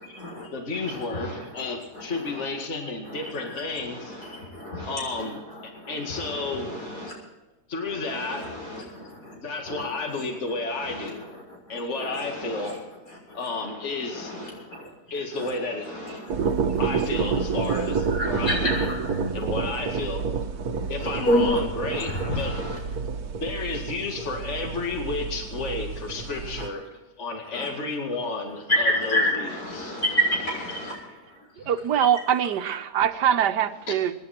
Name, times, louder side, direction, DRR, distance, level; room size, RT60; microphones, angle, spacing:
voice 1, 0.0-0.5 0.8-1.7 1.9-2.4 3.0-7.1 7.8-9.3 9.6-9.9 10.8-12.8 13.1-13.4 13.8-15.6 15.8-16.8 17.5-17.8 18.1-19.4 21.2-21.6 21.9-22.8 26.6-26.7 27.5-27.7 28.7-31.0 31.3-31.4, equal, 70° left, -1 dB, 6.9 m, -30 dB
voice 2, 0.5-4.2 4.9-5.4 5.9-6.7 7.7-8.4 9.0-11.2 11.7-12.8 13.3-14.3 15.1-15.8 16.8-18.7 19.3-20.2 20.9-22.5 23.4-26.8 27.2-30.0 31.6-31.7, left 3 dB, 45° left, 2 dB, 2.4 m, -32 dB
sound 1, 16.3-26.7, right 5 dB, 65° right, 1.6 m, -29 dB
voice 3, 31.6-34.1, right 9 dB, 85° right, 10 dB, 1.5 m, -23 dB
25.5 x 11.0 x 4.4 m, 1.1 s
omnidirectional pair, 1.8 m